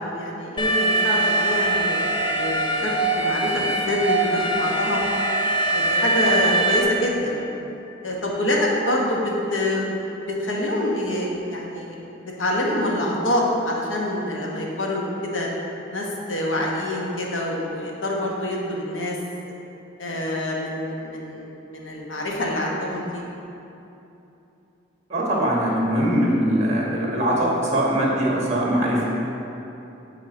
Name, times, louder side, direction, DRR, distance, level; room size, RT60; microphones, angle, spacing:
voice 1, 0.0-5.0 5.7-7.5 8.0-9.9 10.1-15.5 15.9-19.2 20.0-23.2, left 1 dB, 80° left, -2 dB, 1.2 m, -26 dB
Alarm, 0.6-6.8, right 2 dB, 25° left, 0.6 m, -22 dB
voice 2, 25.1-29.0, right 1 dB, 35° right, -4 dB, 1.4 m, -21 dB
8.5 x 3.9 x 5.0 m, 2.9 s
head